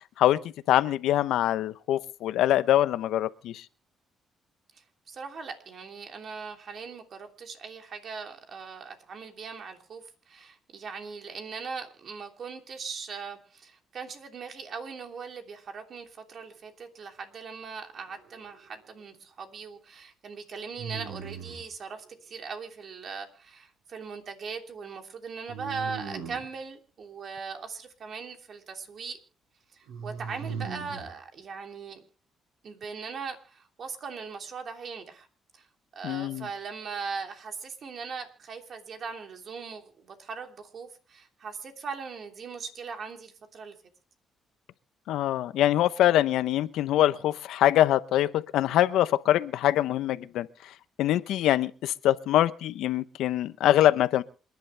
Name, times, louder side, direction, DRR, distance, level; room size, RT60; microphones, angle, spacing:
voice 1, 0.7-3.6 36.0-36.5 45.1-50.5 51.0-54.2, left 13 dB, 85° left, 14 dB, 0.8 m, -24 dB
voice 2, 4.7-29.2 29.7-32.0 32.6-35.3 35.5-35.7 35.9-43.7, right 5 dB, 55° right, 4 dB, 3.0 m, -40 dB
sound 1, 18.0-18.7 20.7-21.7 25.5-26.5 29.9-31.1, right 6 dB, 90° right, 4.9 m, -38 dB
27.5 x 10.5 x 3.4 m, 0.37 s
cardioid pair, 90°, 0 cm